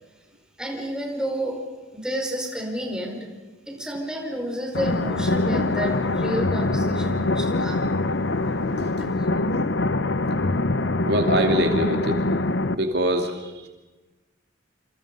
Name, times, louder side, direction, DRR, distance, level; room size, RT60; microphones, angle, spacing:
voice 1, 0.6-1.7 1.9-3.3 3.7-7.9 9.0-9.1, equal, 5° right, 1 dB, 5.1 m, -30 dB
sound 1, 4.7-12.7, left 2 dB, 75° left, 1.0 m, -24 dB
voice 2, 11.1-12.2 12.7-13.5, right 1 dB, 60° right, 4 dB, 2.5 m, -23 dB
28.0 x 28.0 x 5.5 m, 1.2 s
head